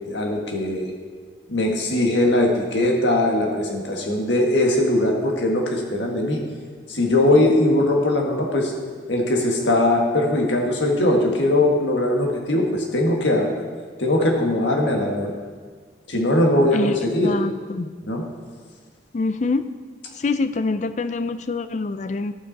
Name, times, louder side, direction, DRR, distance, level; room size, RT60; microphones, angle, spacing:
voice 1, 0.1-0.9 1.5-6.4 6.9-8.7 9.1-13.6 14.0-15.4 16.1-17.4 18.1-18.2, left 1 dB, 85° left, 1 dB, 1.7 m, -20 dB
voice 2, 17.2-17.9 19.1-19.7 20.1-22.3, left 3 dB, 40° left, 12 dB, 0.4 m, -25 dB
12.0 x 8.5 x 4.1 m, 1.5 s
head